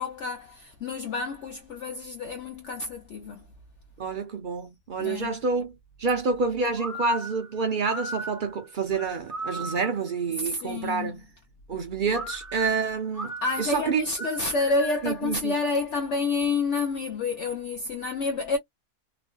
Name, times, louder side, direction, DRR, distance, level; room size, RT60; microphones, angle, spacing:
voice 1, 0.0-3.4 5.0-5.3 10.4-11.1 13.4-18.6, left 3 dB, 60° left, 0.8 m, -29 dB
voice 2, 4.0-11.2 11.7-14.0 15.0-15.5, right 4 dB, 70° right, 0.4 m, -28 dB
sound 1, 6.8-10.1 12.1-15.2, right 2 dB, ahead, 0.4 m, -37 dB
3.0 x 2.4 x 2.2 m
omnidirectional pair, 1.5 m